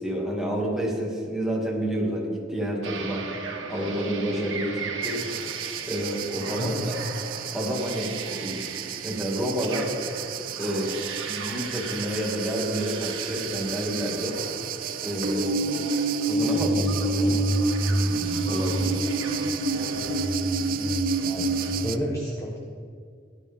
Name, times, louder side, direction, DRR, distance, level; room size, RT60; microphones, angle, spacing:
voice 1, 0.0-3.3 3.7-5.2 5.9-7.1 7.5-8.1 8.4-8.6 9.0-9.9 10.6-10.9 11.3-14.4 15.0-15.5 16.2-17.4 18.4-19.0, equal, 5° right, -3 dB, 2.4 m, -29 dB
sound 1, 2.8-21.9, right 2 dB, 85° right, 1.7 m, -29 dB
sound 2, 5.0-22.0, right 12 dB, 50° right, 0.4 m, -35 dB
voice 2, 6.6-7.0 21.2-21.5 21.8-22.6, equal, 15° left, -2 dB, 1.1 m, -31 dB
16.5 x 11.5 x 3.6 m, 2.2 s
head